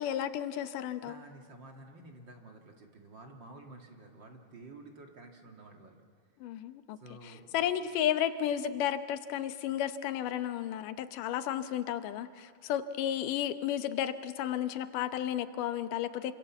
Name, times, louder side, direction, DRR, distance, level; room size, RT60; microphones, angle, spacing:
voice 1, 0.0-1.2 6.4-7.0 7.5-16.3, left 10 dB, 85° left, 11 dB, 2.5 m, -33 dB
voice 2, 1.0-6.0 7.0-7.6, right 2 dB, 40° right, 2 dB, 2.2 m, -51 dB
27.0 x 26.0 x 7.2 m, 2.1 s
omnidirectional pair, 3.7 m